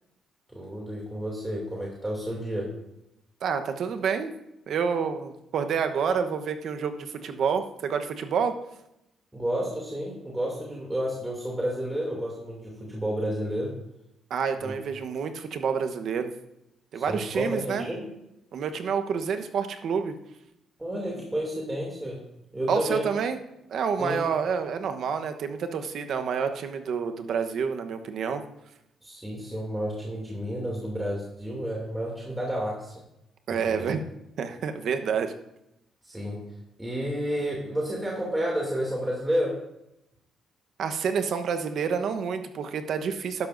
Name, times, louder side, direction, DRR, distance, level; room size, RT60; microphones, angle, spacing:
voice 1, 0.5-2.7 9.3-13.7 14.6-14.7 16.9-18.0 20.8-22.2 22.5-23.0 24.0-24.2 29.0-32.9 33.5-33.9 36.0-36.4 36.8-39.5, equal, 10° right, -3 dB, 2.7 m, -31 dB
voice 2, 3.4-4.3 4.7-8.5 14.3-16.3 16.9-17.9 18.5-20.2 22.7-23.4 23.7-28.4 33.5-34.0 34.4-35.3 40.8-43.5, right 6 dB, 65° right, 8 dB, 1.0 m, -28 dB
12.0 x 11.0 x 2.6 m, 0.85 s
cardioid pair, 90°, 0 cm